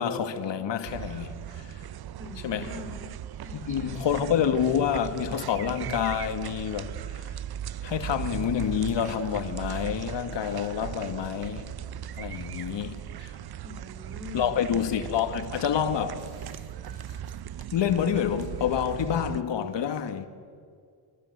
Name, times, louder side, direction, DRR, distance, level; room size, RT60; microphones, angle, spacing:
voice 1, 0.0-1.7 2.4-2.7 3.5-7.2 7.8-11.7 12.2-13.3 14.3-16.3 17.7-20.3, left 8 dB, 65° left, 2.2 m, -28 dB
sound 1, 0.9-19.4, right 10 dB, 55° right, 0.8 m, -38 dB
voice 2, 2.2-3.1 3.4-4.1 13.6-14.6, left 3 dB, 25° right, 5.0 m, -43 dB
28.5 x 24.0 x 8.3 m
cardioid pair, 70°, 46 cm